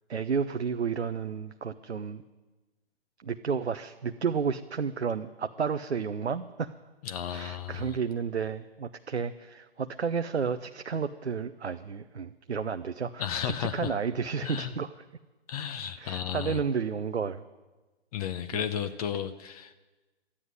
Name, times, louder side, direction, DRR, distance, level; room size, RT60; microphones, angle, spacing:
voice 1, 0.1-2.2 3.2-6.7 7.3-14.9 16.0-17.4 18.5-18.6, right 6 dB, 90° right, 9 dB, 0.7 m, -32 dB
voice 2, 7.0-8.0 13.2-14.0 14.4-14.7 15.5-16.6 18.1-19.8, left 9 dB, 35° left, 11 dB, 0.8 m, -33 dB
13.5 x 9.9 x 9.4 m, 1.2 s
figure-of-eight pair, 125°, 32 cm